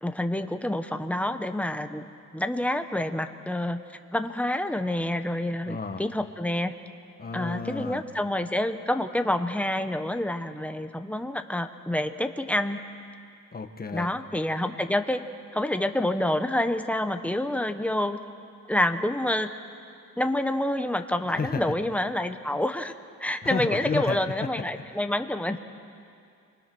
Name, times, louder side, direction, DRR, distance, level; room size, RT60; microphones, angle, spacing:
voice 1, 0.0-2.1 2.3-3.8 4.1-6.7 7.3-12.8 13.9-15.2 15.5-18.2 18.7-19.5 20.2-22.9 23.2-25.6, left 1 dB, 5° left, 7 dB, 0.9 m, -28 dB
voice 2, 5.6-6.0 7.2-8.0 13.5-14.1 21.3-21.6 23.4-24.2, left 4 dB, 30° left, 6 dB, 1.4 m, -31 dB
29.5 x 24.5 x 6.2 m, 2.4 s
wide cardioid pair, 155°, 32 cm